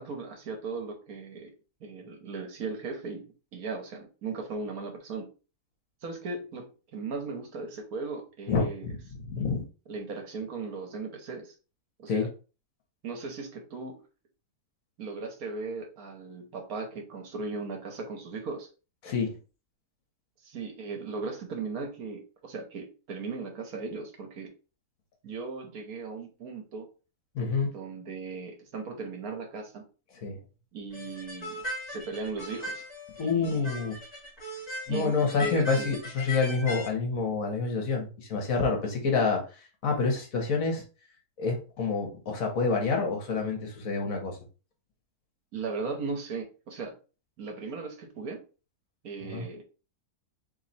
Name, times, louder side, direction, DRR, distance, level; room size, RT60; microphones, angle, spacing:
voice 1, 0.0-1.5 1.8-3.3 3.5-5.3 6.0-8.9 9.9-11.5 12.0-12.3 13.0-14.0 15.0-18.7 20.4-24.5 25.2-26.9 27.6-29.8 30.7-31.6 31.9-32.9 33.2-33.7 34.9-35.9 45.5-46.9 47.4-48.4 49.0-49.6, right 4 dB, 70° right, 4 dB, 1.4 m, -37 dB
voice 2, 8.5-9.6 12.1-12.3 19.0-19.4 27.3-27.7 30.1-30.4 33.2-33.9 34.9-40.8 41.4-44.4 49.2-49.5, left 4 dB, 60° left, 2 dB, 1.5 m, -28 dB
sound 1, 30.9-36.9, left 1 dB, 35° left, 2.2 m, -38 dB
3.4 x 3.1 x 4.1 m, 0.34 s
omnidirectional pair, 1.6 m